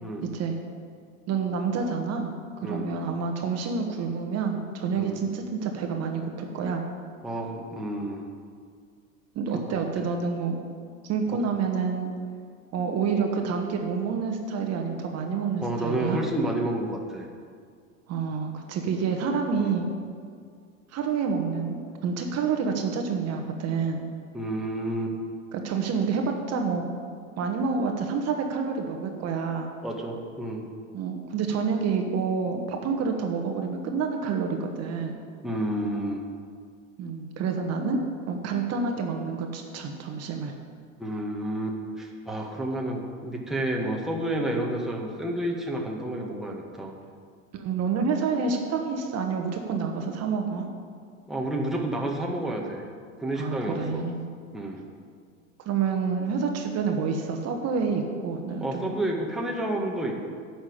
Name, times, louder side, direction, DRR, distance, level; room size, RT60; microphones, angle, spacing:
voice 1, 0.2-0.5 1.3-2.3 2.6-6.8 9.3-10.6 11.0-12.1 12.7-16.2 18.1-19.9 20.9-24.0 25.5-27.0 27.4-29.7 30.9-35.2 37.0-38.0 38.3-40.5 47.5-50.7 53.4-54.2 55.6-58.9, right 5 dB, 40° right, 3 dB, 1.4 m, -28 dB
voice 2, 7.2-8.2 9.5-9.8 15.6-17.3 19.6-19.7 24.3-25.1 29.8-30.6 35.4-36.2 41.0-46.9 51.3-52.8 53.2-54.0 54.5-54.8 58.6-60.2, right 1 dB, ahead, -1 dB, 1.6 m, -30 dB
9.8 x 6.2 x 8.6 m, 2.1 s
hypercardioid pair, 95°, 40 cm